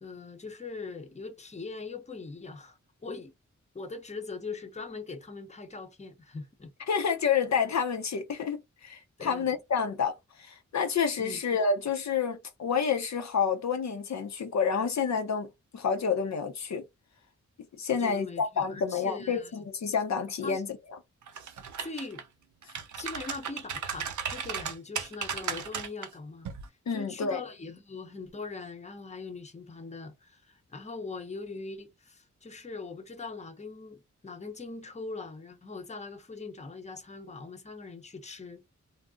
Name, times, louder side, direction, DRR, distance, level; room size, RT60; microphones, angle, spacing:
voice 1, 0.0-3.3 3.7-6.7 9.2-9.6 11.2-11.4 17.9-19.7 20.4-20.6 21.8-22.2 23.0-26.5 26.9-38.6, left 3 dB, 25° left, 0.7 m, -41 dB
voice 2, 6.9-16.8 17.8-20.7 26.9-27.4, left 6 dB, 65° left, 0.5 m, -29 dB
sound 1, 21.3-22.2 22.6-26.1 26.5-26.7, right 7 dB, 75° right, 0.5 m, -35 dB
2.5 x 2.0 x 3.5 m
wide cardioid pair, 75°, 29 cm